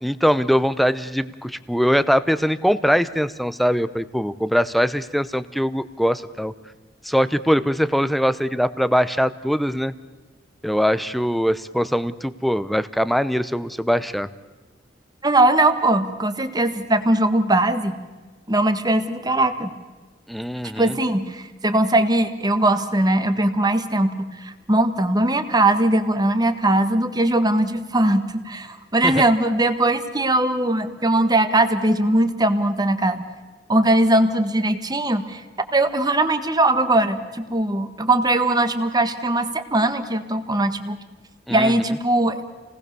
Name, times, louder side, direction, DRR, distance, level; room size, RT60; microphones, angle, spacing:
voice 1, 0.0-6.5 7.0-9.9 10.6-14.3 20.3-20.9 29.0-29.2 41.5-41.7, equal, ahead, 14 dB, 0.7 m, -22 dB
voice 2, 15.2-18.0 18.5-19.7 20.8-33.2 33.7-35.4 35.7-41.0 41.5-42.4, right 1 dB, 20° right, 9 dB, 1.6 m, -20 dB
29.0 x 19.5 x 6.9 m, 1.3 s
head